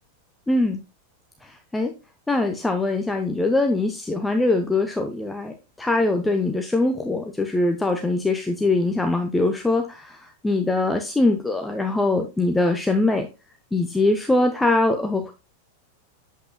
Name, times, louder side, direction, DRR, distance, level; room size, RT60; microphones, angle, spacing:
voice 1, 0.5-0.8 1.4-1.9 2.3-13.3 13.7-15.3, left 2 dB, 5° left, 5 dB, 0.9 m, -22 dB
8.6 x 7.9 x 2.2 m, 0.28 s
figure-of-eight pair, 90°, 0 cm